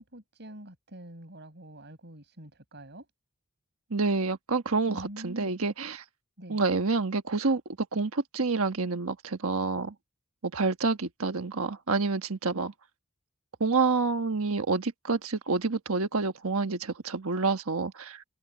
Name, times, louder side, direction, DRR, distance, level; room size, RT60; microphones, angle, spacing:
voice 1, 0.0-3.0 4.9-5.5 6.4-6.6 12.5-12.6, right 1 dB, 50° right, 6.3 m, -45 dB
voice 2, 3.9-6.0 6.5-7.6 7.9-9.9 10.4-12.7 13.6-18.2, right 4 dB, 70° right, 1.3 m, -28 dB
open air
head